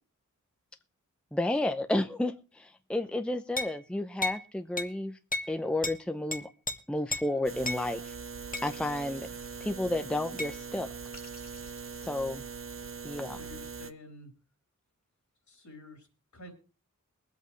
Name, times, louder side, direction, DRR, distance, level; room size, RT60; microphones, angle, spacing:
voice 1, 1.3-5.2 5.5-6.5 6.9-8.1 8.6-9.3 9.6-10.9 12.0-12.4 13.0-13.4, left 1 dB, 5° left, 8 dB, 0.7 m, -31 dB
sound 1, 3.6-3.8 4.2-4.4 4.8-4.9 5.3-5.5 5.8-6.0 6.3-6.8 7.1-7.3 7.6-7.8 8.5-8.7 10.4-10.5, left 2 dB, 25° left, 1.1 m, -33 dB
sound 2, 6.9-7.8 8.5-10.2 11.1-12.8, left 2 dB, 45° left, 2.7 m, -54 dB
sound 3, 7.4-13.9, right 6 dB, 45° right, 0.7 m, -42 dB
voice 2, 13.3-14.3 15.5-16.1 16.3-16.5, left 1 dB, 70° left, 3 dB, 3.9 m, -49 dB
22.0 x 8.3 x 3.2 m, 0.35 s
wide cardioid pair, 90°, 31 cm